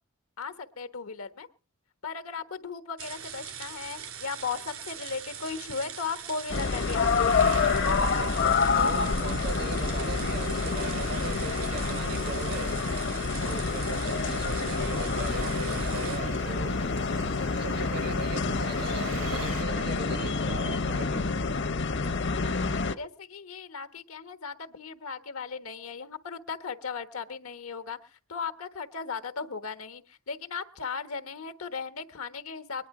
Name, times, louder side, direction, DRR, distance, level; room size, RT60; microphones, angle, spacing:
voice 1, 0.4-1.5 2.0-7.5 23.0-32.9, left 5 dB, 85° left, 1.2 m, -37 dB
sound 1, 3.0-16.2, right 7 dB, 85° right, 2.7 m, -42 dB
sound 2, 6.5-22.9, left 4 dB, 55° left, 0.8 m, -28 dB
sound 3, 7.3-19.6, right 6 dB, 70° right, 0.9 m, -44 dB
voice 2, 8.0-12.7 13.4-16.9 17.6-21.2, right 5 dB, 50° right, 0.6 m, -39 dB
22.0 x 10.0 x 4.8 m
head